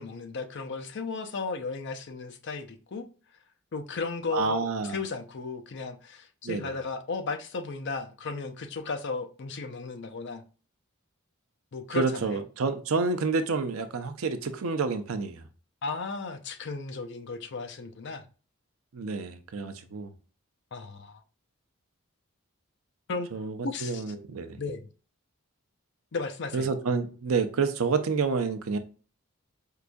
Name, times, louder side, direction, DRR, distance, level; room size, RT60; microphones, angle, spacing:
voice 1, 0.0-3.1 3.7-10.4 11.7-12.4 15.8-18.2 20.7-21.2 23.1-23.3 23.6-24.0 24.6-24.9 26.1-26.7, left 4 dB, 55° left, 0.5 m, -35 dB
voice 2, 4.3-5.0 6.4-6.7 11.9-15.4 18.9-20.1 23.3-24.6 26.5-28.8, right 4 dB, 75° right, 0.6 m, -29 dB
4.7 x 2.6 x 2.2 m
head